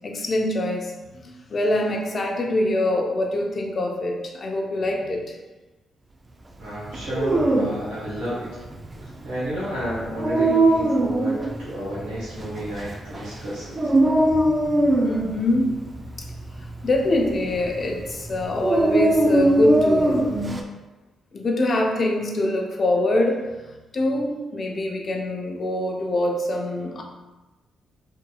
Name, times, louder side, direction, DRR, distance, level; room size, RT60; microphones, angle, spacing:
voice 1, 0.0-5.4 8.9-9.2 15.0-15.8 16.2-16.3 16.8-20.3 21.3-23.7 23.9-27.0, left 1 dB, 50° left, 1 dB, 0.6 m, -24 dB
voice 2, 6.6-8.5 9.2-13.8, equal, 80° right, -10 dB, 1.2 m, -31 dB
Dog, 6.9-20.6, right 1 dB, 30° right, 0.4 m, -22 dB
3.5 x 2.7 x 2.3 m, 1.1 s
hypercardioid pair, 50°, 0 cm